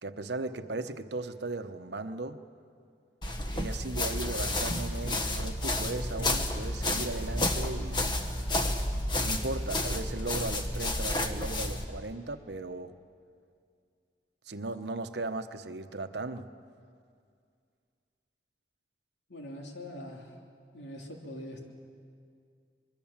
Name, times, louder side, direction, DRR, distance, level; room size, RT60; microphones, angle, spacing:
voice 1, 0.0-2.4 3.5-8.2 9.1-12.9 14.5-16.5, right 2 dB, 80° right, 10 dB, 1.0 m, -37 dB
sound 1, 3.2-11.9, left 1 dB, 25° left, 1.3 m, -31 dB
voice 2, 19.3-20.4 20.7-21.6, left 1 dB, 85° left, 1 dB, 3.2 m, -43 dB
24.5 x 22.0 x 7.4 m, 2.3 s
head